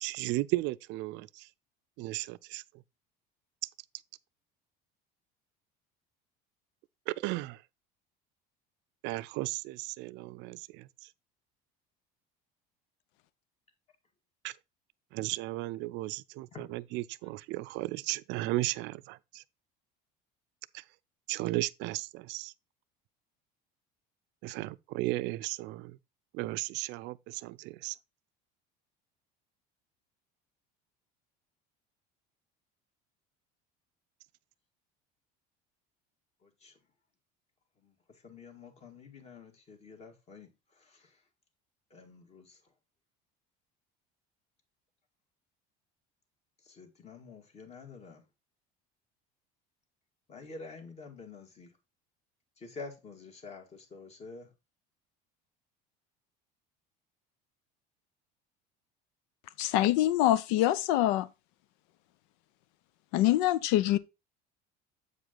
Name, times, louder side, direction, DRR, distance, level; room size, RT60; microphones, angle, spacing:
voice 1, 0.0-1.5 2.0-2.6 7.1-7.6 9.0-10.9 14.4-14.5 15.1-19.4 20.7-20.8 21.3-22.5 24.4-26.0 26.3-28.0, right 19 dB, 65° right, 0.5 m, -35 dB
voice 2, 36.4-36.8 37.8-41.2 41.9-42.7 46.6-48.2 50.3-51.8 52.6-54.5, left 4 dB, 35° left, 2.1 m, -49 dB
voice 3, 59.6-61.3 63.1-64.0, left 14 dB, 80° left, 0.6 m, -25 dB
8.1 x 5.0 x 3.8 m
cardioid pair, 125°, 20 cm